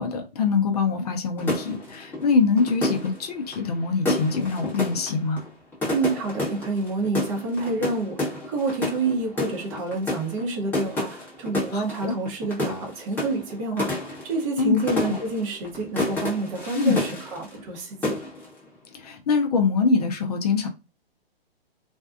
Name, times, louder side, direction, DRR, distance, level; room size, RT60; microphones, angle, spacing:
voice 1, 0.0-5.4 11.7-12.1 14.6-15.2 16.7-17.0 18.9-20.7, left 4 dB, 40° left, 0.5 m, -24 dB
sound 1, 1.4-17.8 18.0-18.6, left 2 dB, 5° left, 0.7 m, -30 dB
voice 2, 5.9-18.2, right 3 dB, 30° right, 0.8 m, -28 dB
2.5 x 2.2 x 2.4 m
hypercardioid pair, 130°, 31 cm